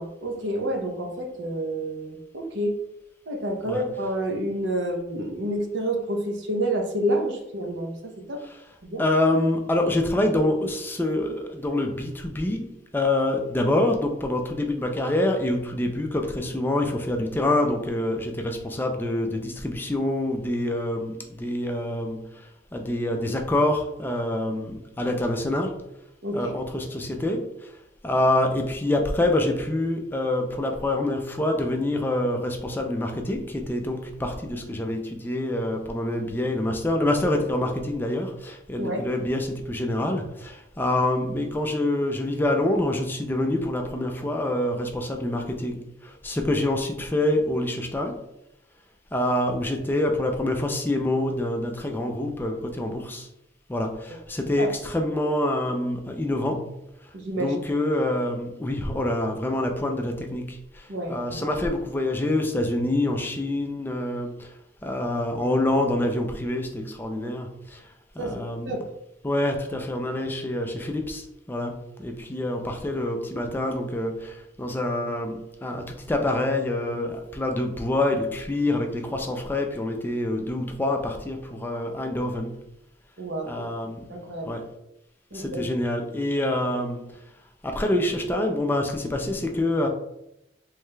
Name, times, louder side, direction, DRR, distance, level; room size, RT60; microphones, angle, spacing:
voice 1, 0.0-2.7 3.3-8.4 8.8-9.0 26.2-26.5 38.8-39.0 54.6-54.7 57.1-57.6 60.9-61.5 68.2-68.8 83.2-84.5 85.3-85.6, right 1 dB, 75° right, 3 dB, 0.7 m, -29 dB
voice 2, 9.0-25.9 26.3-27.7 28.0-48.2 49.1-53.3 53.7-57.1 57.4-67.9 68.2-68.7 69.2-82.6 83.5-84.1 84.5-84.7 85.3-87.1 87.6-89.9, left 1 dB, 10° left, 3 dB, 0.3 m, -26 dB
4.8 x 3.2 x 2.2 m, 0.85 s
head